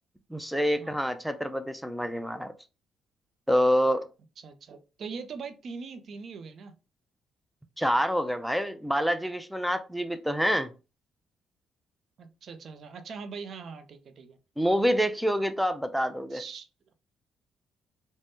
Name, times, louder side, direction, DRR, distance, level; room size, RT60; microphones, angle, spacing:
voice 1, 0.3-2.5 3.5-4.1 7.8-10.7 14.6-16.4, equal, ahead, 0.4 m, -27 dB
voice 2, 4.4-6.7 12.2-14.4 16.3-16.7, right 5 dB, 60° right, 0.5 m, -41 dB
3.4 x 2.1 x 2.6 m
cardioid pair, 90°, 0 cm